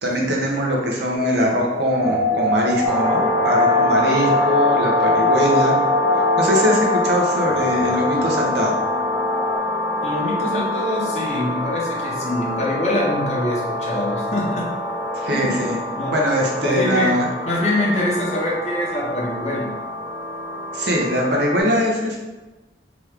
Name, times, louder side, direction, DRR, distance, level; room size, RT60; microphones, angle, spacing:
voice 1, 0.0-5.8 6.4-8.8 15.1-15.8 16.1-17.3 20.7-22.2, equal, 70° right, -1 dB, 0.6 m, -21 dB
sound 1, 1.1-9.6, left 2 dB, 85° left, 0.4 m, -23 dB
sound 2, 2.8-21.6, left 1 dB, 10° left, 0.4 m, -25 dB
voice 2, 10.0-14.7 15.3-15.6 15.9-16.1 16.6-17.2 17.4-19.7, left 1 dB, 40° left, -3 dB, 0.7 m, -24 dB
2.9 x 2.4 x 3.2 m, 1.1 s
head